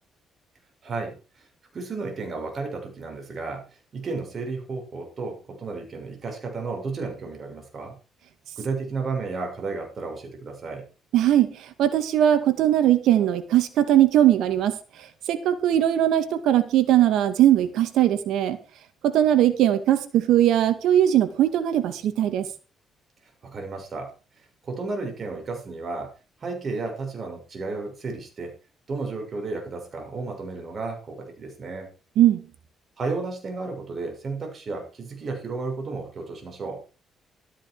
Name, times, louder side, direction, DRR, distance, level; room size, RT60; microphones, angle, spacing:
voice 1, 0.8-1.5 1.7-8.0 8.6-10.9 23.4-26.1 26.4-28.5 28.9-31.9 33.0-36.8, right 3 dB, 45° right, 3 dB, 6.6 m, -33 dB
voice 2, 11.1-14.8 15.3-18.6 19.0-22.5 32.2-32.4, right 11 dB, 85° right, 10 dB, 2.2 m, -20 dB
14.0 x 13.0 x 4.8 m, 0.35 s
cardioid pair, 90°, 0 cm